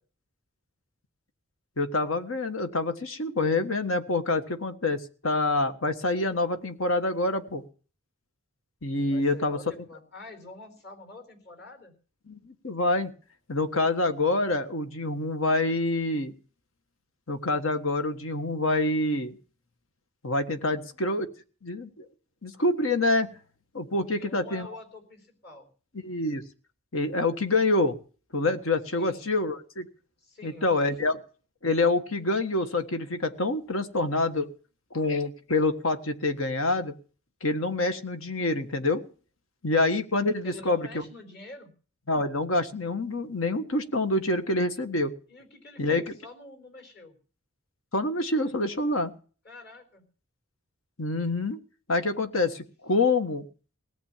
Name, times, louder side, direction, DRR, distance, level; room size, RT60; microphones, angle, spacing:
voice 1, 1.8-7.6 8.8-9.6 12.3-13.1 13.5-16.3 17.3-19.4 20.2-21.3 21.6-22.0 22.4-23.3 23.7-24.7 26.0-26.4 26.9-28.0 28.3-29.9 30.4-31.2 31.6-34.5 34.9-36.9 37.4-39.0 39.6-41.0 42.1-45.1 45.8-46.0 47.9-49.1 51.0-51.6 51.9-53.4, left 2 dB, 80° left, 8 dB, 1.6 m, -26 dB
voice 2, 9.1-11.9 20.7-21.0 24.0-25.7 28.9-29.3 30.2-31.2 40.4-41.7 45.3-47.2 49.4-50.0, left 2 dB, 50° left, 6 dB, 4.2 m, -47 dB
18.0 x 8.1 x 7.3 m, 0.40 s
head